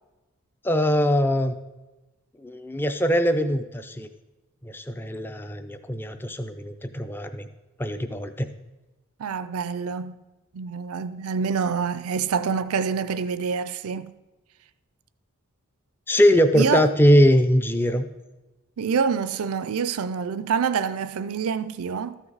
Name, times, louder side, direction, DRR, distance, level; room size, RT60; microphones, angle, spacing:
voice 1, 0.6-1.6 2.4-4.1 4.6-7.5 7.8-8.5 16.1-18.0, equal, 10° left, 0.4 m, -21 dB
voice 2, 9.2-10.2 10.5-14.1 16.5-16.9 18.8-22.2, right 6 dB, 75° right, 0.5 m, -26 dB
13.5 x 6.0 x 4.0 m
head